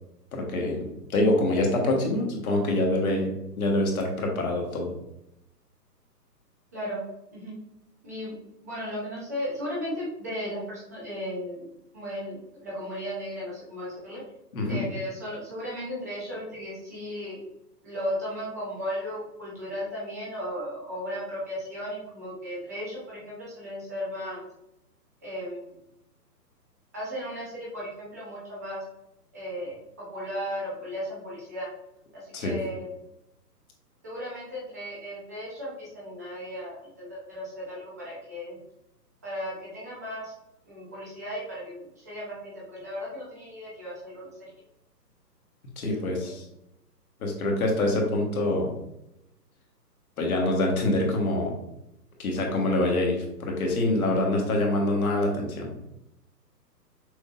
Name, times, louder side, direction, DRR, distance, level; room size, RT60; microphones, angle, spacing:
voice 1, 0.3-3.3 3.6-4.9 14.5-14.8 32.3-32.6 45.8-46.4 47.2-48.7 50.2-51.5 52.2-55.7, left 1 dB, 60° left, 0 dB, 1.4 m, -25 dB
voice 2, 8.0-8.3 8.6-11.6 11.9-14.2 14.7-17.4 17.8-24.4 25.2-25.7 26.9-28.8 29.3-29.8 30.1-31.7 32.1-32.9 34.0-38.6 39.2-40.3 40.7-44.3 46.1-46.3, equal, 10° right, -6 dB, 0.5 m, -35 dB
6.2 x 2.7 x 2.4 m, 0.85 s
hypercardioid pair, 145°, 50 cm